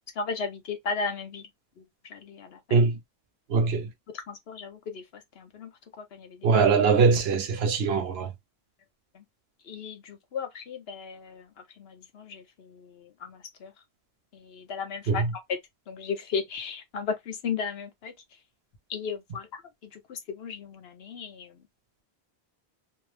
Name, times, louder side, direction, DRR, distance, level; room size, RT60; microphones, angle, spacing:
voice 1, 0.2-1.5 2.1-2.6 4.1-5.0 5.4-5.7 6.0-6.5 9.1-9.2 9.7-11.4 11.8-12.9 13.2-13.7 14.3-15.3 15.9-18.1 18.9-19.6 19.9-21.5, left 5 dB, 75° left, 1.0 m, -35 dB
voice 2, 3.5-3.9 6.4-8.3 15.1-15.3, right 5 dB, 75° right, 0.9 m, -22 dB
2.7 x 2.0 x 3.1 m
omnidirectional pair, 1.1 m